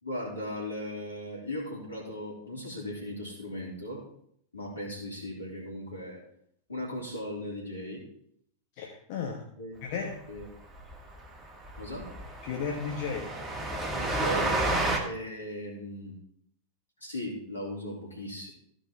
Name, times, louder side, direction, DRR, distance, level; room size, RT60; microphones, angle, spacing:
voice 1, 0.0-4.0 4.5-6.2 6.7-8.0 9.5-9.7 10.3-10.5 11.8-12.1 13.9-14.5 15.0-16.1 17.0-18.5, left 1 dB, 80° left, -2 dB, 3.2 m, -37 dB
voice 2, 8.8-9.4 9.8-10.2 12.4-13.4, left 6 dB, 50° left, 0 dB, 1.3 m, -34 dB
Train, 10.4-10.5 10.8-10.9 11.2-11.3 11.6-15.0, right 2 dB, 10° right, 1.7 m, -30 dB
14.5 x 5.3 x 4.3 m, 0.70 s
figure-of-eight pair, 90°, 0 cm